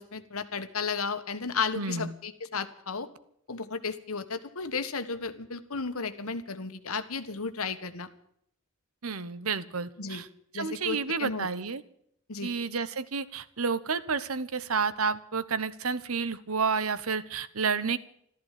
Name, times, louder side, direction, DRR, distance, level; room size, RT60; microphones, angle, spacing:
voice 1, 0.0-3.1 3.5-8.1 10.0-10.2 10.5-11.5 12.3-12.5, left 5 dB, 85° left, 11 dB, 1.5 m, -34 dB
voice 2, 1.8-2.1 9.0-10.3 10.5-11.8 12.4-18.0, right 5 dB, 85° right, 14 dB, 1.1 m, -30 dB
14.5 x 13.5 x 7.5 m, 0.69 s
head